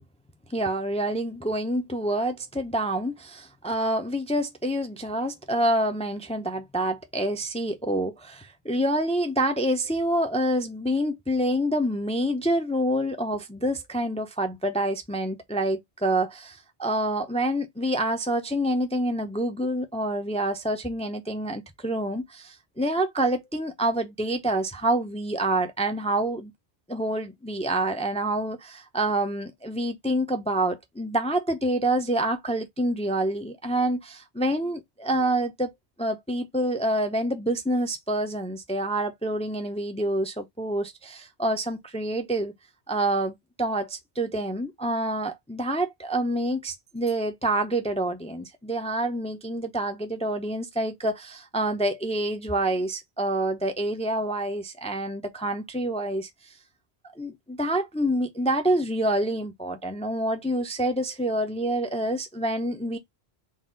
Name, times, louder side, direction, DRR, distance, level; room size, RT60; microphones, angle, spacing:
voice 1, 0.5-26.5 26.9-35.7 36.0-42.5 42.9-56.5 57.2-63.0, right 1 dB, 10° left, 0.4 m, -27 dB
4.0 x 2.4 x 3.6 m
omnidirectional pair, 1.1 m